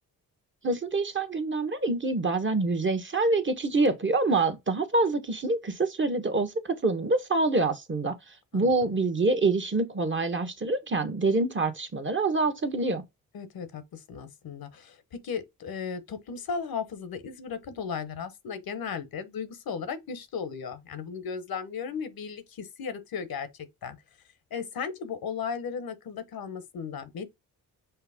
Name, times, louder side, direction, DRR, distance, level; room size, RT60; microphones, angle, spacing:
voice 1, 0.6-13.0, right 3 dB, 30° right, 1.0 m, -26 dB
voice 2, 8.5-8.9 13.3-23.5 23.8-24.0 24.5-27.3, left 6 dB, 65° left, 0.9 m, -36 dB
5.6 x 2.1 x 3.4 m
cardioid pair, 55°, 38 cm